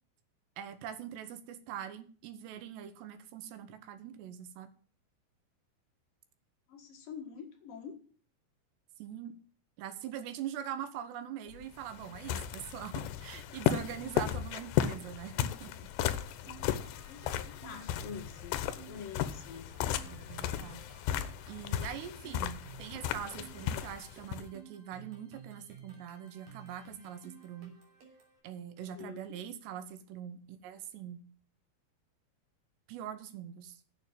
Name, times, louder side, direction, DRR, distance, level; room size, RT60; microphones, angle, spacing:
voice 1, 0.6-4.7 9.0-9.4 9.8-15.9 20.1-20.9 21.5-27.8 28.4-31.3 32.9-33.8, right 9 dB, 80° right, 11 dB, 3.3 m, -43 dB
voice 2, 6.7-8.0 17.0-19.7 28.9-29.2, left 6 dB, 60° left, 1 dB, 3.4 m, -46 dB
sound 1, 11.5-24.5, left 11 dB, 85° left, 3.0 m, -35 dB
sound 2, 16.1-28.4, right 7 dB, 55° right, 4.4 m, -55 dB
9.0 x 7.2 x 9.0 m, 0.43 s
omnidirectional pair, 4.9 m